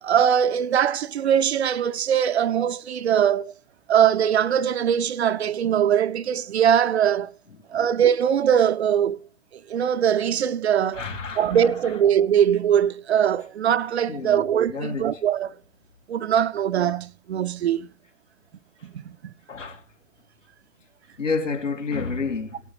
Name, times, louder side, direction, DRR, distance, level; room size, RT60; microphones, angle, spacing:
voice 1, 0.0-3.5 3.9-7.3 7.7-9.2 9.5-11.1 11.4-15.5 16.1-17.9 18.8-19.3, right 9 dB, 60° right, 0.7 m, -21 dB
voice 2, 10.9-11.6 14.1-15.1 19.5-19.8 21.2-22.6, left 4 dB, 75° left, 2.8 m, -29 dB
18.5 x 12.5 x 3.3 m
figure-of-eight pair, 115°, 37 cm